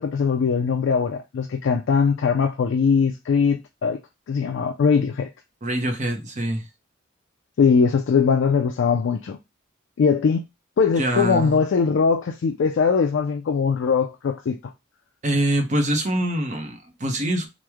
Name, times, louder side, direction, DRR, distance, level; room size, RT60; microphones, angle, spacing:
voice 1, 0.0-4.0 4.3-5.3 7.6-9.4 10.0-10.4 10.8-14.6, left 5 dB, 65° left, 0.3 m, -21 dB
voice 2, 5.6-6.6 11.0-11.6 15.2-17.5, right 1 dB, 35° right, 0.7 m, -24 dB
3.0 x 2.1 x 3.4 m
head